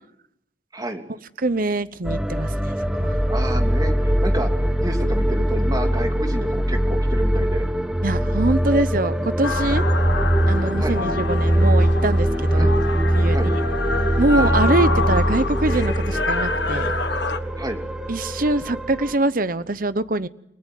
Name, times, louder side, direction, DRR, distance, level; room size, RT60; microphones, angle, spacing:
voice 1, 0.7-1.0 3.3-7.7 10.8-11.0 12.5-12.7 13.3-13.5 14.3-14.5 17.6-17.8, right 1 dB, 20° right, 4 dB, 3.0 m, -30 dB
voice 2, 1.4-3.2 8.0-9.8 10.5-12.7 13.1-13.6 14.2-16.9 18.1-20.3, right 2 dB, 45° right, 14 dB, 1.0 m, -23 dB
sound 1, 2.1-19.2, right 1 dB, 5° right, 1.4 m, -22 dB
sound 2, 9.4-17.4, left 3 dB, 65° left, 1.6 m, -27 dB
30.0 x 19.5 x 9.2 m, 0.77 s
head